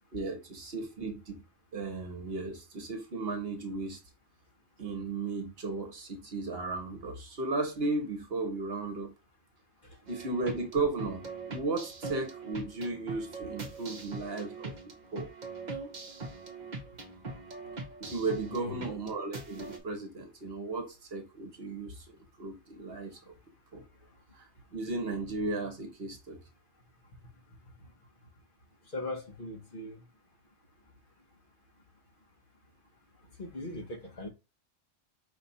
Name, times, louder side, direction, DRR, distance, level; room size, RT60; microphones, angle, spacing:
voice 1, 0.1-1.4 1.7-4.0 4.8-9.1 10.1-14.7 15.1-15.3 18.0-23.3 23.7-23.8 24.7-26.4, right 3 dB, 60° right, 1.2 m, -35 dB
sound 1, 10.1-19.8, right 3 dB, 40° right, 0.9 m, -42 dB
voice 2, 18.5-18.8 28.9-29.9 33.4-34.3, left 2 dB, 50° left, 1.2 m, -39 dB
5.3 x 2.4 x 4.1 m
omnidirectional pair, 1.2 m